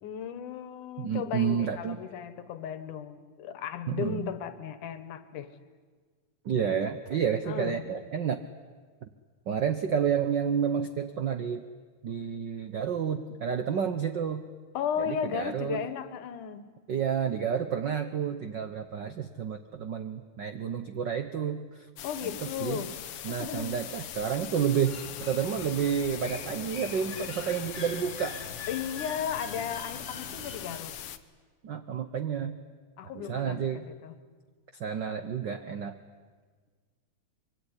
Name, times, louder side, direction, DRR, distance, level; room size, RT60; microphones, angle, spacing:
voice 1, 0.0-5.5 7.5-7.9 14.7-16.7 22.0-22.9 23.3-23.8 28.7-30.9 33.0-34.1, left 8 dB, 90° left, 12 dB, 2.9 m, -35 dB
voice 2, 1.0-2.0 3.9-4.3 6.4-8.4 9.5-11.6 12.0-14.4 15.1-15.8 16.9-21.6 22.2-22.3 22.6-22.8 23.2-28.4 31.6-32.6 33.1-33.8 34.8-36.0, right 7 dB, 75° right, 9 dB, 1.0 m, -30 dB
sound 1, 22.0-31.2, left 11 dB, 65° left, 1.8 m, -41 dB
sound 2, 24.8-30.8, left 4 dB, 25° left, 2.2 m, -44 dB
25.0 x 23.5 x 9.9 m, 1.5 s
omnidirectional pair, 3.5 m